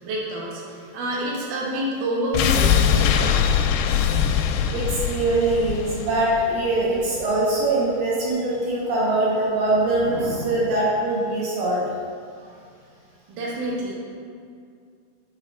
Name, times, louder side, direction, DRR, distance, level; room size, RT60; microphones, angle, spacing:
voice 1, 0.0-3.4 13.3-13.9, equal, 75° right, -4 dB, 1.9 m, -28 dB
sound 1, 2.3-7.3 7.6-7.7, left 8 dB, 90° left, 3.1 m, -22 dB
voice 2, 4.7-11.8, right 2 dB, 60° right, -7 dB, 2.8 m, -22 dB
9.5 x 4.8 x 4.9 m, 2.3 s
omnidirectional pair, 5.7 m